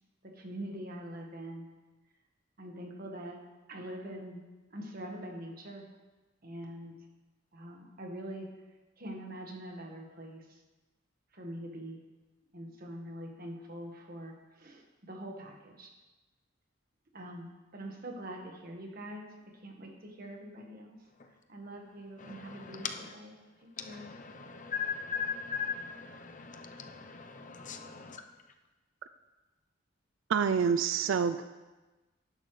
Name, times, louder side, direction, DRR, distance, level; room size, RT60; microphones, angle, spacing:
voice 1, 0.2-1.7 2.6-3.4 3.7-4.4 4.7-5.8 6.4-6.9 7.5-8.5 9.0-10.6 11.3-12.0 12.5-15.9 17.1-19.3 19.6-20.9 21.5-22.9 23.8-24.1, right 1 dB, 45° right, 2 dB, 1.5 m, -44 dB
voice 2, 22.2-23.1 23.8-28.2, left 6 dB, 40° left, 6 dB, 0.7 m, -39 dB
voice 3, 30.3-31.4, right 6 dB, 70° right, 11 dB, 0.4 m, -27 dB
11.0 x 10.5 x 3.2 m, 1.2 s
head